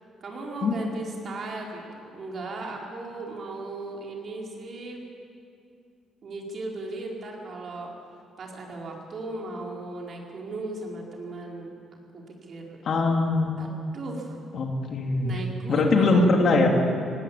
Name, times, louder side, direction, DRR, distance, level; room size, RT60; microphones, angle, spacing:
voice 1, 0.2-5.0 6.2-7.9 8.4-11.7 12.1-12.8 13.6-14.4 15.2-16.3, right 2 dB, 55° right, -1 dB, 4.5 m, -36 dB
voice 2, 12.8-13.5 14.5-15.3 15.7-16.7, left 3 dB, 60° left, 2 dB, 3.0 m, -21 dB
18.5 x 18.0 x 8.6 m, 2.4 s
cardioid pair, 90°, 0 cm